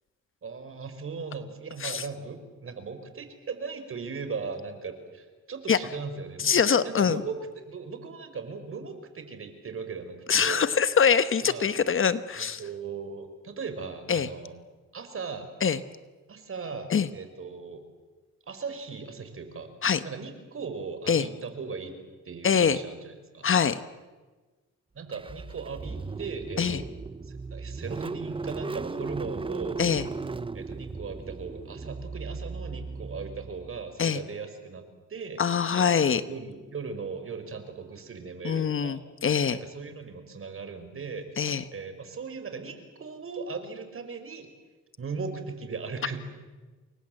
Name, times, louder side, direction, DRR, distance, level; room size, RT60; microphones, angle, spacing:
voice 1, 0.4-6.6 6.8-10.7 11.4-11.7 12.4-14.5 14.9-15.5 16.3-17.8 18.5-19.7 20.0-22.0 22.2-23.5 24.9-26.9 27.2-29.8 30.5-34.8 35.1-35.4 35.7-39.0 39.5-41.3 41.7-44.5 45.0-46.2, right 5 dB, 45° right, 8 dB, 4.9 m, -38 dB
voice 2, 6.4-7.2 10.3-12.6 14.1-14.3 15.6-15.8 16.9-17.1 19.8-20.0 21.1-21.3 22.4-22.8 23.4-23.8 26.6-26.8 29.8-30.1 34.0-34.2 35.4-36.2 38.4-39.6 41.4-41.6, left 7 dB, 45° left, 13 dB, 1.2 m, -24 dB
Car / Engine starting, 25.1-33.9, right 4 dB, 15° right, 0.8 m, -37 dB
29.0 x 23.0 x 7.8 m, 1.3 s
cardioid pair, 90°, 30 cm